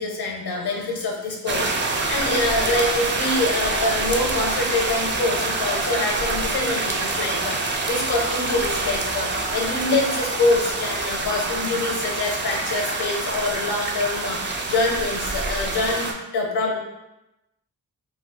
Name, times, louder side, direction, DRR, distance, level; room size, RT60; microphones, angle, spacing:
voice 1, 0.0-14.4 14.7-16.8, left 2 dB, 80° left, 1 dB, 0.7 m, -25 dB
sound 1, 1.5-16.1, right 3 dB, 30° right, 0.4 m, -26 dB
2.3 x 2.3 x 3.7 m, 0.93 s
wide cardioid pair, 100°, 38 cm